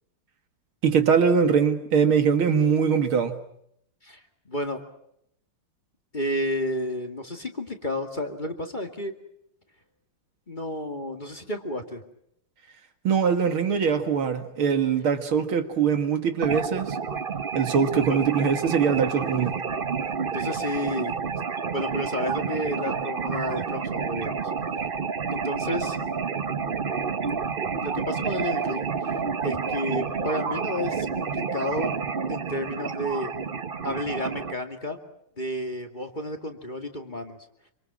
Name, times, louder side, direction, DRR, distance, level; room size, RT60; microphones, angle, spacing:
voice 1, 0.8-3.4 13.0-17.0 17.5-19.6, right 6 dB, 75° right, 2.6 m, -22 dB
voice 2, 4.5-4.8 6.1-9.1 10.5-12.0 18.1-18.2 20.3-21.2 21.7-24.4 25.3-26.0 27.8-29.1 29.4-31.9 32.3-33.3 33.8-35.0 35.4-37.4, left 1 dB, 20° left, 2.3 m, -31 dB
sound 1, 16.4-34.5, right 5 dB, 35° right, 0.9 m, -29 dB
27.0 x 26.0 x 6.1 m
omnidirectional pair, 2.3 m